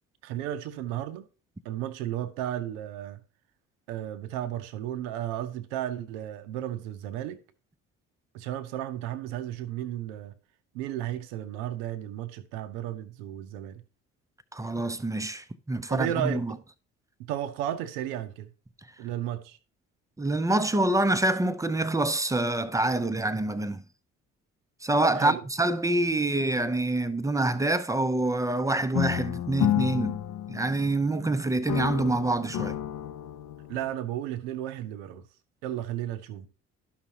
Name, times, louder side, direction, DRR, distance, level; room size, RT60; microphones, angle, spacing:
voice 1, 0.2-1.3 1.6-3.2 3.9-7.4 8.3-10.3 10.7-13.8 15.9-16.6 17.2-18.5 19.0-19.6 25.1-25.4 33.7-35.2 35.6-36.5, right 12 dB, 70° right, 0.7 m, -34 dB
voice 2, 14.5-16.5 20.2-23.8 24.8-30.2 30.5-32.8, right 2 dB, 10° right, 0.5 m, -26 dB
sound 1, 28.9-31.3 31.7-33.9, left 11 dB, 50° left, 0.6 m, -31 dB
12.0 x 5.8 x 2.8 m
figure-of-eight pair, 50°, 39 cm